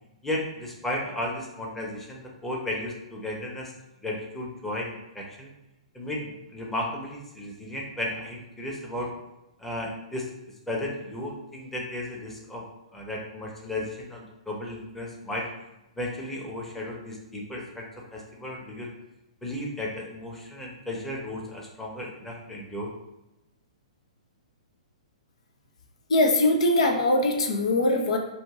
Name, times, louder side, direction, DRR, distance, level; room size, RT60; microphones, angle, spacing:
voice 1, 0.2-3.7 4.0-5.5 5.9-9.1 9.6-10.3 10.7-12.6 12.9-15.5 16.0-17.9 18.1-18.9 19.4-22.9, left 1 dB, 5° left, -3 dB, 0.9 m, -34 dB
voice 2, 26.1-28.2, left 1 dB, 65° left, 3 dB, 0.7 m, -22 dB
4.4 x 2.7 x 3.7 m, 0.95 s
figure-of-eight pair, 115°, 4 cm